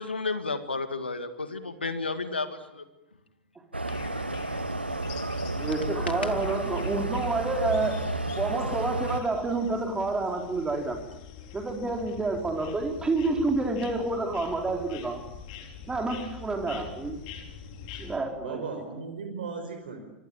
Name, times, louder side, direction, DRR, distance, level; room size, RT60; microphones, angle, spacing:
voice 1, 0.0-2.8, left 3 dB, 80° left, 9 dB, 2.1 m, -32 dB
sound 1, 3.7-9.2, right 2 dB, 85° right, 1.2 m, -31 dB
sound 2, 3.9-18.2, left 7 dB, 50° left, 4.6 m, -45 dB
voice 2, 5.5-8.0 8.3-11.0 11.5-15.2 15.9-17.2 18.0-18.6, right 3 dB, 10° right, 3 dB, 4.1 m, -29 dB
voice 3, 18.3-20.0, right 4 dB, 60° right, 4 dB, 5.6 m, -37 dB
26.5 x 25.0 x 8.9 m, 0.93 s
figure-of-eight pair, 90°, 6 cm